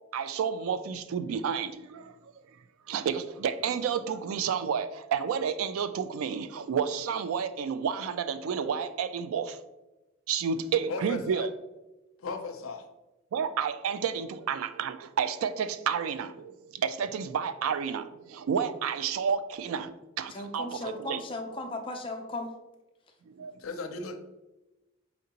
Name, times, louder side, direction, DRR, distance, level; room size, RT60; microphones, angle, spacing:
voice 1, 0.1-2.3 2.9-9.6 10.3-11.5 13.3-21.2 23.3-23.6, right 7 dB, 80° right, 12 dB, 0.3 m, -31 dB
voice 2, 10.9-11.5 12.2-12.9 23.6-24.3, left 3 dB, 80° left, 7 dB, 0.5 m, -36 dB
voice 3, 20.3-22.5, left 2 dB, 25° left, 4 dB, 0.5 m, -36 dB
4.4 x 3.8 x 2.8 m, 1.0 s
head